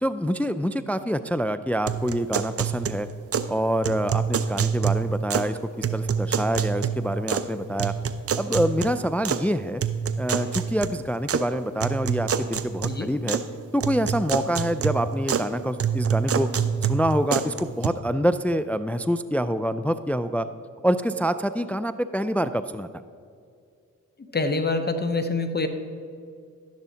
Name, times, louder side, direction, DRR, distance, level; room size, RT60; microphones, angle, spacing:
voice 1, 0.0-3.1 3.5-5.6 5.9-7.9 8.4-9.8 10.2-13.4 13.7-16.5 16.8-20.5 20.8-22.9, equal, 5° left, 12 dB, 0.3 m, -26 dB
sound 1, 1.9-3.5 3.8-5.5 5.8-7.5 7.8-9.4 9.8-11.4 11.8-13.5 13.8-15.5 15.8-17.9, right 7 dB, 45° right, 0.6 m, -27 dB
voice 2, 24.3-25.7, left 3 dB, 30° left, 8 dB, 0.9 m, -25 dB
12.0 x 10.5 x 2.8 m, 2.3 s
cardioid pair, 60°, 32 cm